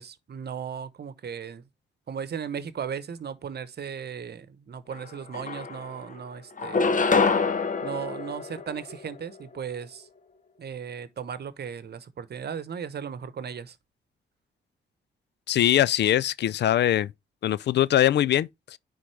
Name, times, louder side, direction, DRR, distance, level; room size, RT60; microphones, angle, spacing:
voice 1, 0.0-1.6 2.1-7.0 7.8-10.1 10.6-13.8, right 7 dB, 55° right, 1.0 m, -36 dB
sound 1, 4.9-5.0 5.3-6.1 6.6-9.2, left 4 dB, 40° left, 1.2 m, -26 dB
voice 2, 15.5-17.1 17.4-18.8, left 12 dB, 60° left, 0.4 m, -22 dB
9.8 x 3.9 x 3.3 m
supercardioid pair, 50°, 20 cm